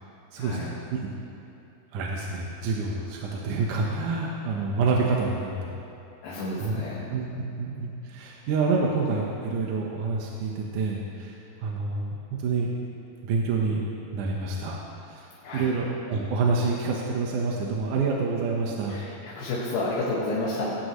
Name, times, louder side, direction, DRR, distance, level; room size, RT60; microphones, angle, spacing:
voice 1, 0.4-0.7 6.2-7.0 15.4-15.7 18.9-20.7, left 2 dB, 90° left, -7 dB, 3.6 m, -30 dB
voice 2, 1.9-5.7 6.6-6.8 7.1-7.3 7.6-11.4 11.6-12.7 13.2-13.8 14.1-14.8 15.1-15.2 15.5-19.0, right 4 dB, 70° right, -2 dB, 2.5 m, -27 dB
18.0 x 18.0 x 3.2 m, 2.8 s
omnidirectional pair, 4.0 m